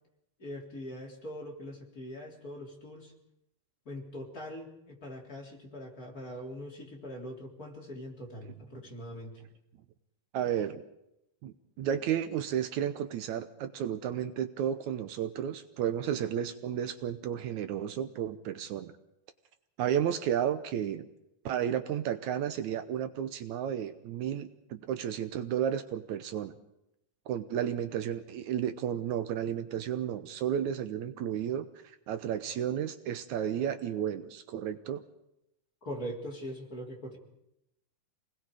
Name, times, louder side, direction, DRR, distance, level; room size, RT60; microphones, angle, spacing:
voice 1, 0.4-3.1 3.9-9.4 35.8-37.2, equal, 30° left, -1 dB, 3.9 m, -42 dB
voice 2, 10.3-10.8 11.4-18.9 19.8-21.1 21.5-26.6 27.3-35.0, right 9 dB, 75° right, 11 dB, 2.2 m, -32 dB
27.5 x 20.0 x 4.9 m, 0.83 s
omnidirectional pair, 3.5 m